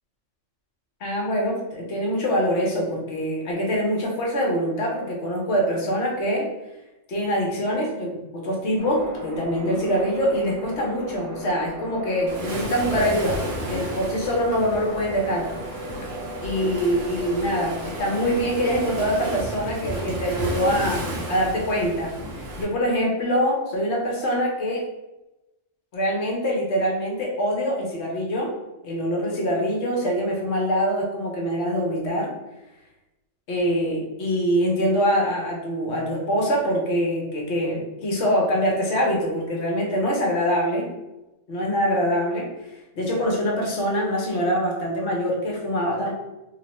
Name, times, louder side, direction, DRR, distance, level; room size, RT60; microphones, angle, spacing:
voice 1, 1.0-6.5 7.1-13.4 13.7-15.5 16.4-24.8 25.9-28.5 28.8-32.3 33.5-40.9 41.5-42.5 42.9-46.1, equal, 65° left, -1 dB, 1.1 m, -24 dB
sound 1, 8.8-19.4, right 1 dB, 55° right, 1.1 m, -37 dB
Waves surf, 12.3-22.6, right 1 dB, 85° right, 1.2 m, -33 dB
3.2 x 2.1 x 2.9 m, 0.99 s
omnidirectional pair, 1.3 m